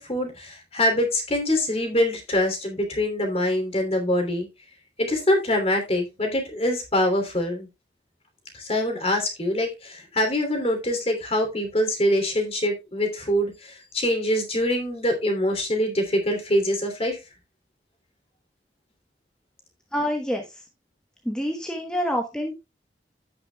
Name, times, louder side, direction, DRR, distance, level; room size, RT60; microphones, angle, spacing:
voice 1, 0.0-4.5 5.0-7.7 8.5-17.2, left 1 dB, 35° left, 3 dB, 2.9 m, -24 dB
voice 2, 19.9-20.4 21.2-22.5, equal, 5° left, 2 dB, 1.1 m, -27 dB
15.0 x 6.0 x 2.3 m, 0.25 s
head